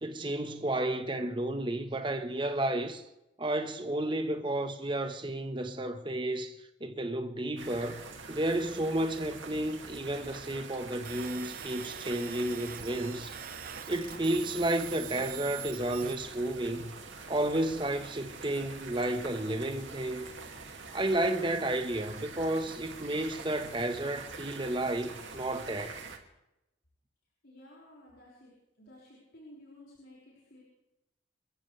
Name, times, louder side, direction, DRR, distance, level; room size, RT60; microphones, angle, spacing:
voice 1, 0.0-3.0 3.4-8.0 8.3-13.4 13.9-16.9 17.3-20.3 20.9-26.0, right 1 dB, 25° right, 1.3 m, -32 dB
sound 1, 7.6-26.2, right 4 dB, 75° right, 2.5 m, -45 dB
sound 2, 11.0-16.2, right 9 dB, 45° right, 0.7 m, -44 dB
voice 2, 27.4-28.5 28.8-30.6, left 1 dB, 65° left, 5.8 m, -54 dB
28.5 x 15.0 x 3.4 m
head